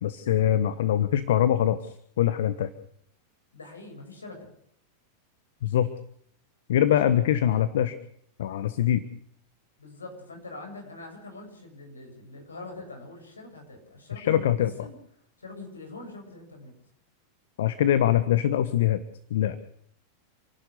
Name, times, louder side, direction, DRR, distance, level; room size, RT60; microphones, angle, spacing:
voice 1, 0.0-2.7 5.6-5.9 6.7-8.0 8.4-9.0 14.1-14.7 17.6-19.0 19.3-19.6, left 11 dB, 70° left, 14 dB, 1.2 m, -23 dB
voice 2, 3.5-4.5 7.0-7.2 9.8-15.0 15.4-16.7, left 2 dB, 90° left, 3 dB, 7.4 m, -43 dB
29.0 x 12.0 x 8.2 m, 0.66 s
hypercardioid pair, 95°, 0 cm